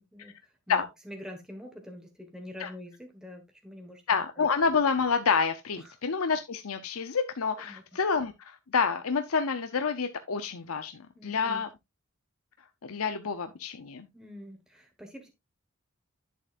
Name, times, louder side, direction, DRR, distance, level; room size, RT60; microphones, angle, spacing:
voice 1, 0.0-4.0 4.4-4.5 5.8-6.0 7.6-7.8 11.2-11.6 14.1-15.3, left 1 dB, 5° right, 1.5 m, -45 dB
voice 2, 4.1-11.7 12.8-14.1, left 5 dB, 80° left, 0.7 m, -28 dB
10.5 x 7.3 x 2.5 m
head